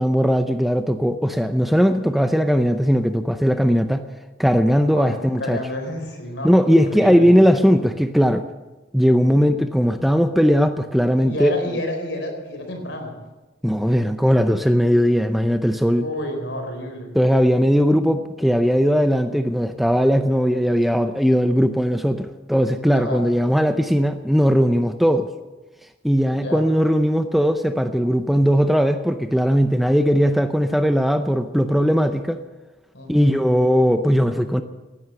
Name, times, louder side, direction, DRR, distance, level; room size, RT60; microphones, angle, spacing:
voice 1, 0.0-4.0 4.4-5.6 6.4-8.4 8.9-11.5 13.6-16.1 17.1-25.3 26.0-32.4 33.1-34.6, equal, ahead, 8 dB, 0.6 m, -18 dB
voice 2, 4.9-7.4 11.2-13.2 16.0-17.1 22.9-23.2 26.3-26.6 32.9-33.3, left 1 dB, 75° left, 4 dB, 4.3 m, -30 dB
16.5 x 11.0 x 7.7 m, 1.1 s
head